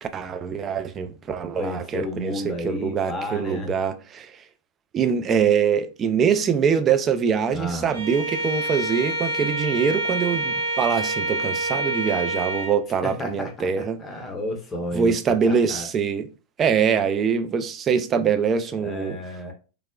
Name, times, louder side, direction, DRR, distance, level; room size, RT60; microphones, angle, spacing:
voice 1, 0.0-4.3 4.9-14.0 14.9-16.3 16.6-19.2, right 6 dB, 25° right, 0.3 m, -23 dB
voice 2, 1.5-3.7 7.5-8.0 13.0-13.7 14.0-15.1 15.4-15.9 18.8-19.5, left 1 dB, 20° left, 0.7 m, -31 dB
Bowed string instrument, 7.9-12.8, right 1 dB, 80° right, 1.0 m, -27 dB
3.6 x 2.0 x 2.2 m
figure-of-eight pair, 90°, 0 cm